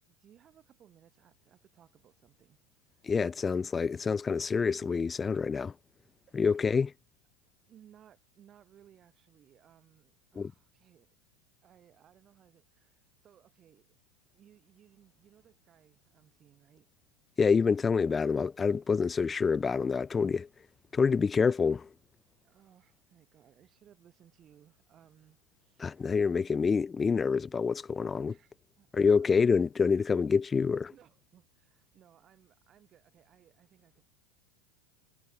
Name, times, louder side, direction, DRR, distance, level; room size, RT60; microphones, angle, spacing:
voice 1, 0.1-2.6 2.9-3.0 6.3-6.6 7.6-11.2 11.6-13.9 14.3-16.9 22.4-26.2 28.2-29.9 30.9-34.1, right 10 dB, 35° right, 5.8 m, -62 dB
voice 2, 3.0-5.7 6.3-6.9 10.4-10.5 17.4-20.5 20.9-21.9 25.8-28.3 28.9-30.9, left 5 dB, 20° left, 0.3 m, -27 dB
supercardioid pair, 110°, 0 cm